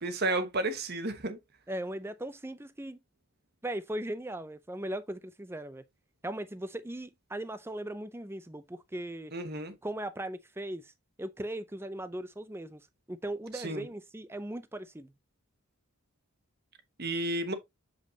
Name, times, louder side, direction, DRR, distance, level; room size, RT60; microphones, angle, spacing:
voice 1, 0.0-1.4 9.3-9.7 13.5-13.9 17.0-17.5, right 2 dB, 45° right, 1.1 m, -32 dB
voice 2, 1.7-3.0 3.6-5.8 6.2-9.3 9.8-10.9 11.2-15.1, right 1 dB, 10° right, 0.5 m, -38 dB
7.1 x 5.3 x 2.8 m
head